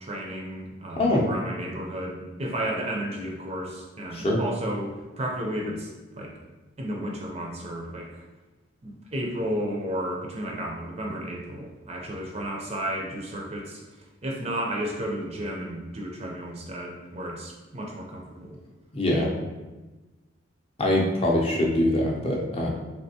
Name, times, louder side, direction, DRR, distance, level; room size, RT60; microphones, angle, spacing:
voice 1, 0.0-5.9 6.2-6.3 6.8-8.2 8.8-13.8 14.2-18.6, right 1 dB, 30° right, -1 dB, 0.5 m, -33 dB
voice 2, 18.9-19.3 20.8-22.7, left 1 dB, 30° left, -2 dB, 0.5 m, -23 dB
3.5 x 3.3 x 2.7 m, 1.2 s
head